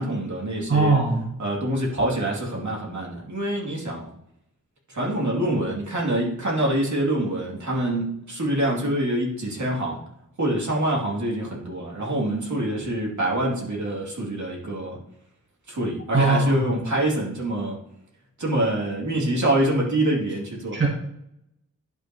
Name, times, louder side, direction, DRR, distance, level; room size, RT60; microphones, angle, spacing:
voice 1, 0.0-1.0 1.4-4.1 4.9-10.0 10.4-15.0 15.7-17.8 18.4-20.8, right 1 dB, 65° right, -3 dB, 2.8 m, -25 dB
voice 2, 0.7-1.3 16.1-16.7 20.7-20.9, right 3 dB, 35° right, -1 dB, 1.4 m, -20 dB
10.5 x 5.8 x 3.0 m, 0.78 s
wide cardioid pair, 100°, 32 cm